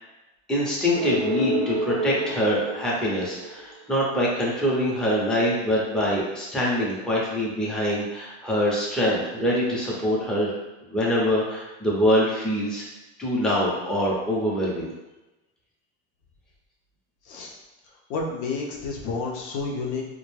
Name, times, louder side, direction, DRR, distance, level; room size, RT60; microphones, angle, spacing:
voice 1, 0.5-10.5 10.9-12.9 13.2-14.9, equal, ahead, -6 dB, 0.6 m, -24 dB
sound 1, 0.9-3.8, right 1 dB, 70° right, 0.6 m, -29 dB
voice 2, 18.1-20.0, left 4 dB, 65° left, -1 dB, 0.7 m, -30 dB
2.4 x 2.1 x 3.2 m, 1.0 s
supercardioid pair, 110°, 32 cm